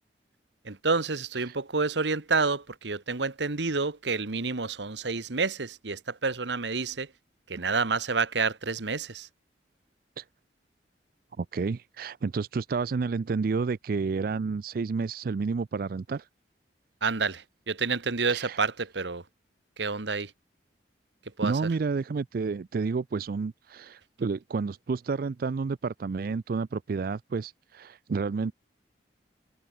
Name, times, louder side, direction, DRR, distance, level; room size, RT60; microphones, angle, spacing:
voice 1, 0.6-7.1 7.5-9.3 17.0-19.2 19.8-20.3 21.4-21.5, right 4 dB, 75° right, 1.3 m, -29 dB
voice 2, 11.4-16.3 18.3-18.6 21.4-28.5, right 4 dB, 50° right, 0.4 m, -30 dB
head